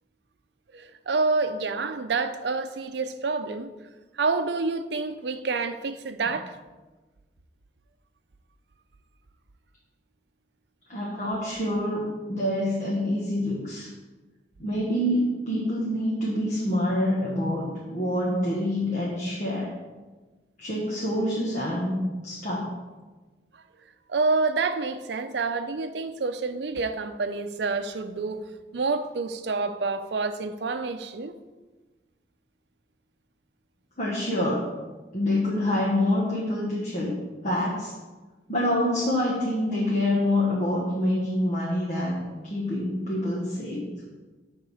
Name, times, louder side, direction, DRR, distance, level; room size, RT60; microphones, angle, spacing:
voice 1, 0.7-3.7 4.2-6.5 24.1-28.4 28.7-31.4, right 4 dB, 75° right, 10 dB, 0.6 m, -28 dB
voice 2, 10.9-13.9 14.6-19.7 20.6-22.7 34.0-34.7 35.1-37.2 37.4-37.9 38.5-43.9, left 1 dB, 40° left, -4 dB, 1.3 m, -26 dB
8.6 x 3.7 x 6.3 m, 1.2 s
head